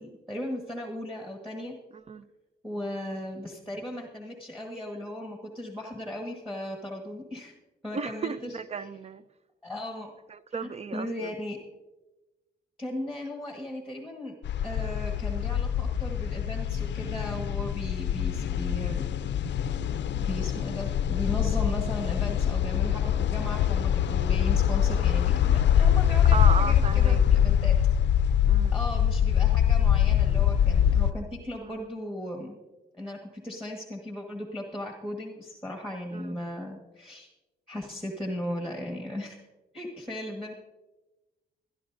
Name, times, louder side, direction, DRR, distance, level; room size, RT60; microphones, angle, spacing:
voice 1, 0.0-1.7 2.6-7.5 7.8-8.9 9.6-10.1 10.5-11.6 12.8-14.3 14.6-19.1 20.2-27.8 28.7-32.6 32.9-37.3 37.7-39.4 39.7-40.5, left 1 dB, ahead, 0 dB, 1.5 m, -37 dB
voice 2, 1.9-2.2 7.9-9.2 10.3-11.3 26.3-27.2 28.4-28.8 31.6-31.8 36.1-36.4, right 5 dB, 35° right, 14 dB, 0.5 m, -34 dB
sound 1, 14.4-31.1, left 9 dB, 70° left, 0.5 m, -24 dB
22.0 x 11.5 x 2.6 m, 1.1 s
cardioid pair, 120°, 19 cm